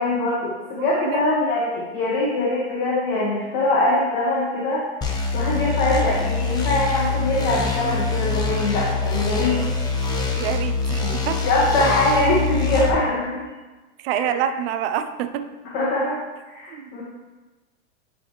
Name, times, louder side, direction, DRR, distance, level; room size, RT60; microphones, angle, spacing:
voice 1, 0.0-4.8 5.3-9.6 10.0-10.4 11.0-11.1 11.4-13.4 14.1-14.4 15.7-16.2 16.5-17.0, left 2 dB, 50° left, -5 dB, 1.6 m, -23 dB
voice 2, 0.8-1.2 10.4-11.4 14.0-15.5 16.7-16.9, right 9 dB, 50° right, 9 dB, 0.6 m, -27 dB
sound 1, 5.0-12.9, left 4 dB, 10° left, 0.4 m, -24 dB
11.0 x 3.7 x 3.1 m, 1.2 s
supercardioid pair, 140°, 37 cm